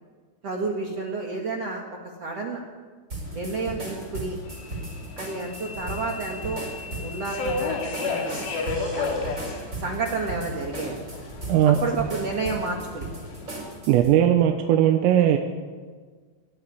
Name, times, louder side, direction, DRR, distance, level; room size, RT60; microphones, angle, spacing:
voice 1, 0.4-2.6 3.3-4.4 5.2-6.6 7.0-9.4 9.8-11.0 11.6-13.0, right 3 dB, 65° right, 0 dB, 1.5 m, -31 dB
sound 1, 3.1-14.2, right 2 dB, 15° right, 4.2 m, -37 dB
Subway metro underground, 3.3-13.8, left 4 dB, 60° left, 4.4 m, -34 dB
voice 2, 11.5-11.8 13.9-15.4, right 11 dB, 85° right, 5 dB, 3.6 m, -18 dB
19.5 x 14.5 x 9.9 m, 1.5 s
omnidirectional pair, 5.9 m